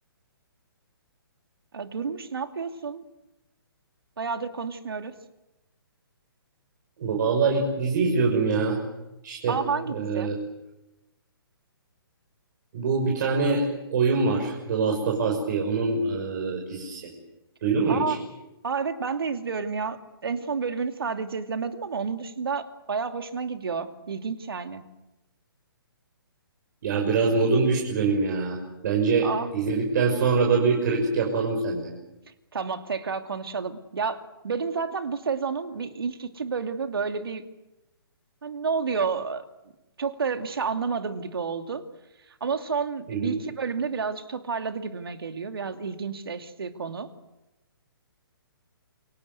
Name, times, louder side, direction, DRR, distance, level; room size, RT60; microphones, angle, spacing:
voice 1, 1.7-3.0 4.2-5.2 9.5-10.3 17.9-18.2 18.6-24.9 29.2-29.5 32.5-37.4 38.4-39.5 40.0-41.8 42.4-47.1, right 5 dB, 70° right, 7 dB, 2.6 m, -30 dB
voice 2, 7.0-8.8 9.2-9.6 9.9-10.4 12.7-13.7 13.9-17.1 17.6-18.2 26.8-28.6 28.8-31.9 43.1-43.4, right 4 dB, 50° right, 1 dB, 6.2 m, -24 dB
28.5 x 23.5 x 8.1 m, 0.98 s
figure-of-eight pair, 135°, 13 cm